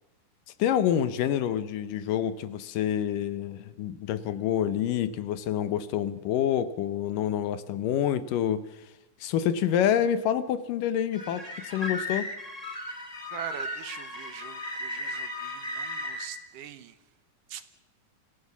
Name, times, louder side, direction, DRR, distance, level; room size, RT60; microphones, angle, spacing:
voice 1, 0.6-8.6 9.2-12.3, left 10 dB, 75° left, 13 dB, 2.5 m, -27 dB
sound 1, 11.1-16.3, left 1 dB, 10° left, 2.3 m, -35 dB
voice 2, 13.3-17.0 17.5-17.6, right 10 dB, 70° right, 12 dB, 2.5 m, -43 dB
26.0 x 16.5 x 7.2 m, 0.98 s
omnidirectional pair, 4.1 m